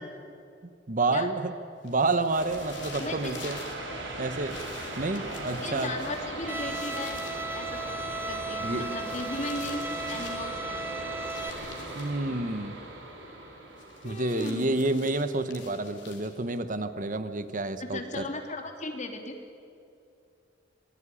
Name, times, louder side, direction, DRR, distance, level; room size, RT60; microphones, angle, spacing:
voice 1, 0.9-1.5 1.8-3.6 4.2-4.6 5.0-5.9 8.6-8.9 11.9-12.8 14.0-18.2, right 2 dB, 45° right, 11 dB, 1.1 m, -29 dB
sound 1, 1.8-3.8 4.5-7.4 8.7-10.5 11.2-12.2 13.8-16.6, left 6 dB, 70° left, 4.2 m, -48 dB
sound 2, 2.3-15.6, right 2 dB, 75° right, 4.8 m, -39 dB
voice 2, 3.0-3.3 5.6-7.2 7.5-8.0 8.3-10.9 14.0-14.8 17.8-19.3, left 2 dB, 40° left, 4 dB, 3.1 m, -36 dB
Bowed string instrument, 6.5-11.5, right 2 dB, 10° right, 1.1 m, -36 dB
26.0 x 20.5 x 10.0 m, 2.5 s
head